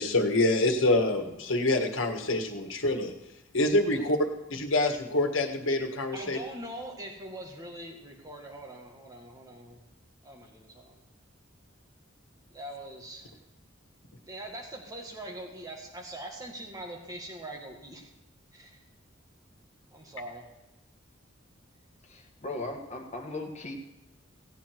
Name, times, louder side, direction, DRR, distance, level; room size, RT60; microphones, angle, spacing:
voice 1, 0.0-3.1 3.5-4.2 4.5-6.4, left 2 dB, 75° left, 4 dB, 1.6 m, -26 dB
voice 2, 6.1-9.8 10.2-11.0 12.5-13.4 14.3-18.1 18.5-18.8 19.9-20.5, right 1 dB, 20° right, 0 dB, 1.8 m, -42 dB
voice 3, 22.0-23.7, left 2 dB, 35° left, 2 dB, 1.7 m, -38 dB
16.5 x 8.7 x 4.6 m, 0.97 s
head